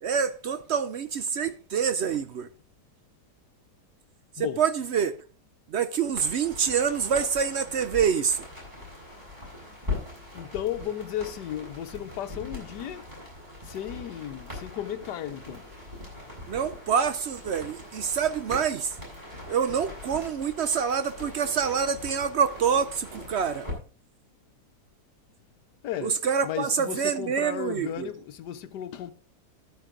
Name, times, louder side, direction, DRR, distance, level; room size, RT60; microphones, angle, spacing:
voice 1, 0.0-2.5 4.4-5.2 5.7-8.4 16.5-19.0 19.5-23.7 26.0-28.1, right 7 dB, 65° right, 0.6 m, -26 dB
sound 1, 6.1-23.7, left 2 dB, 25° right, 6.7 m, -41 dB
voice 2, 10.3-13.1 13.6-15.7 25.8-29.1, left 11 dB, 90° left, 1.4 m, -34 dB
11.5 x 9.5 x 3.8 m
omnidirectional pair, 1.8 m